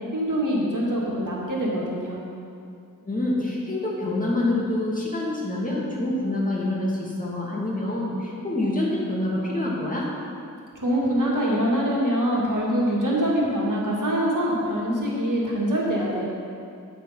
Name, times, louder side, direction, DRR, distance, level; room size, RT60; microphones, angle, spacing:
voice 1, 0.1-2.2 10.8-16.2, equal, 65° right, -5 dB, 2.2 m, -24 dB
voice 2, 3.0-10.1, left 1 dB, 25° left, -5 dB, 2.2 m, -26 dB
9.6 x 6.8 x 5.7 m, 2.5 s
wide cardioid pair, 75°, 33 cm